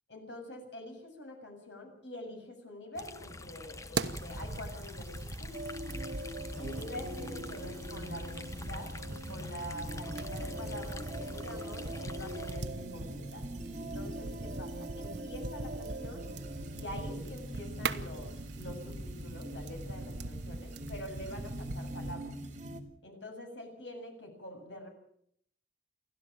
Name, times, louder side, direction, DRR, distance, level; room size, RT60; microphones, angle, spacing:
voice 1, 0.1-5.6 6.6-13.5 13.8-16.2 16.7-22.3 23.0-24.9, left 1 dB, 85° left, 4 dB, 7.7 m, -45 dB
sound 1, 3.0-12.6, left 2 dB, 20° left, 0.9 m, -45 dB
sound 2, 3.9-22.1, right 3 dB, 80° right, 1.3 m, -42 dB
sound 3, 5.5-22.8, right 1 dB, 45° right, 2.7 m, -43 dB
29.0 x 12.5 x 7.5 m, 0.68 s
head